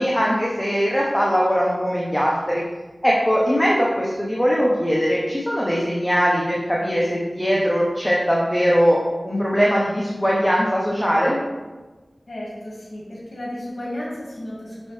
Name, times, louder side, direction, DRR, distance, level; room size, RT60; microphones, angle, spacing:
voice 1, 0.0-2.6 3.0-11.4, equal, 10° left, -5 dB, 1.1 m, -20 dB
voice 2, 12.3-14.9, left 1 dB, 80° left, -5 dB, 1.8 m, -33 dB
6.3 x 5.9 x 3.3 m, 1.2 s
wide cardioid pair, 55°, 0 cm